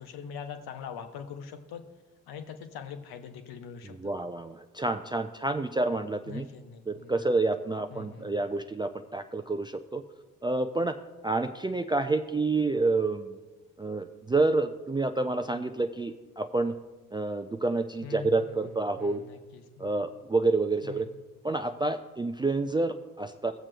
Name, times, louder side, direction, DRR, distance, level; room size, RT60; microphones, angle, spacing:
voice 1, 0.0-1.8 2.3-4.1 6.3-7.2 7.9-8.4 18.0-20.0 20.8-21.1, left 6 dB, 65° left, 6 dB, 0.9 m, -43 dB
voice 2, 4.0-6.5 6.9-10.0 10.4-11.0 11.2-13.3 13.8-16.7 17.1-19.3 19.8-21.1 21.4-23.5, right 3 dB, 10° right, 7 dB, 0.3 m, -28 dB
21.5 x 7.3 x 2.2 m, 1.2 s
hypercardioid pair, 45°, 41 cm